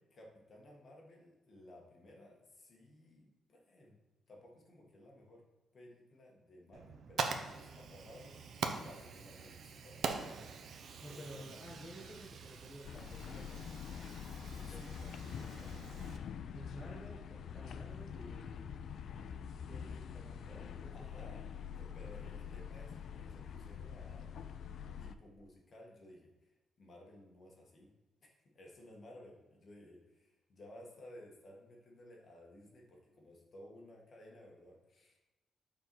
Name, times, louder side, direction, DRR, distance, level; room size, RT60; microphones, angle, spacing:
voice 1, 0.1-4.0 4.3-5.4 5.7-10.2 11.1-11.5 14.5-15.0 20.8-21.5 21.8-24.3 25.0-27.9 28.2-35.2, left 1 dB, 35° left, -1 dB, 1.4 m, -57 dB
Fire, 6.7-16.2, right 5 dB, 55° right, 0.6 m, -43 dB
voice 2, 11.0-13.7 14.5-16.1 16.5-18.7 19.0-21.3 22.0-22.3, equal, 10° left, -4 dB, 1.0 m, -53 dB
sound 1, 12.8-25.1, left 7 dB, 60° left, 0.3 m, -45 dB
6.8 x 4.0 x 4.6 m, 1.1 s
cardioid pair, 155°, 0 cm